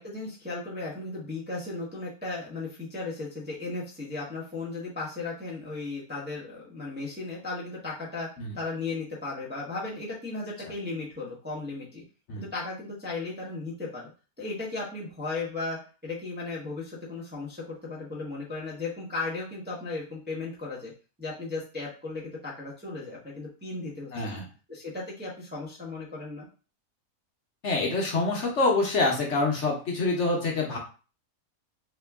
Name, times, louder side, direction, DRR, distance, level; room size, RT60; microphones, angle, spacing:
voice 1, 0.0-8.3 8.5-12.0 12.3-14.1 14.4-20.9 21.2-24.4 24.7-26.5, left 3 dB, 10° right, -5 dB, 0.7 m, -36 dB
voice 2, 24.1-24.4 27.6-30.8, left 3 dB, 55° left, -1 dB, 1.1 m, -26 dB
3.3 x 2.9 x 3.5 m, 0.35 s
omnidirectional pair, 1.6 m